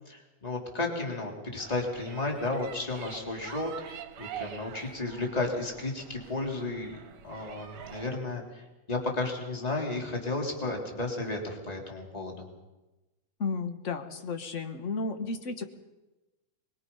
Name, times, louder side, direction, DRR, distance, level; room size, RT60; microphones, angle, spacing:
voice 1, 0.1-7.0 7.2-12.5, left 2 dB, 15° left, 0 dB, 3.2 m, -33 dB
sound 1, 1.6-8.2, right 9 dB, 65° right, 2.5 m, -45 dB
voice 2, 13.4-15.6, left 4 dB, 55° left, 7 dB, 0.8 m, -33 dB
24.0 x 22.5 x 5.5 m, 1.1 s
omnidirectional pair, 3.4 m